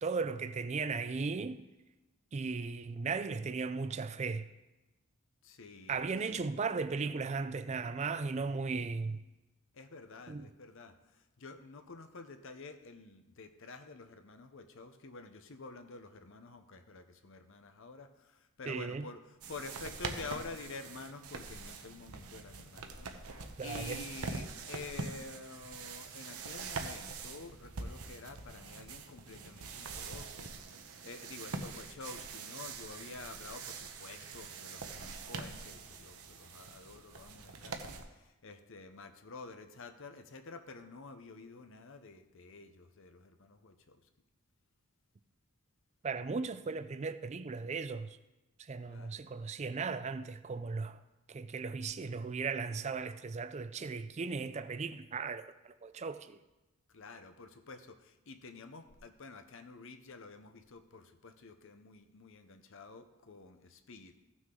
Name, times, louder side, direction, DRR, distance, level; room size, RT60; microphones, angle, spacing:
voice 1, 0.0-1.6 2.3-4.5 5.9-9.2 10.3-10.5 18.7-19.0 23.6-24.0 46.0-48.2 48.6-51.0 51.3-56.4, right 4 dB, 30° right, 0.4 m, -36 dB
voice 2, 5.4-6.4 9.7-44.0 48.9-49.2 56.9-64.2, left 3 dB, 60° left, 0.7 m, -49 dB
sound 1, 19.4-38.0, right 4 dB, 80° right, 0.9 m, -44 dB
15.0 x 6.1 x 3.8 m
head